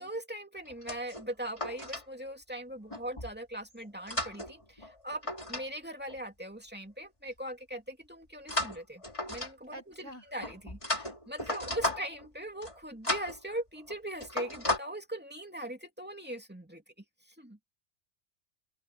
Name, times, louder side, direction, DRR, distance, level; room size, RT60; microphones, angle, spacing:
voice 1, 0.0-9.0 9.3-16.8 17.3-17.6, right 1 dB, 10° right, 2.6 m, -40 dB
sound 1, 0.6-2.0 2.9-3.3 3.8-5.7 5.9-6.2 8.5-9.8 10.4-12.3 12.6-12.8 13.0-13.4 13.8-13.9 14.2-14.8, left 1 dB, 25° left, 3.0 m, -35 dB
voice 2, 9.7-10.2 11.4-11.8, right 1 dB, 75° right, 7.7 m, -47 dB
open air
omnidirectional pair, 1.2 m